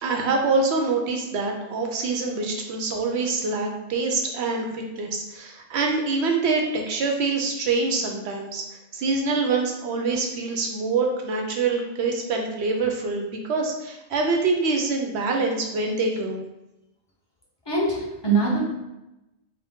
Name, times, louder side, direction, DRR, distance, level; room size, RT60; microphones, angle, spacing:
voice 1, 0.0-8.6 8.9-16.4, right 3 dB, 70° right, 2 dB, 0.8 m, -25 dB
voice 2, 17.7-18.6, right 3 dB, 25° left, -7 dB, 0.9 m, -23 dB
3.8 x 2.1 x 3.5 m, 0.95 s
omnidirectional pair, 1.2 m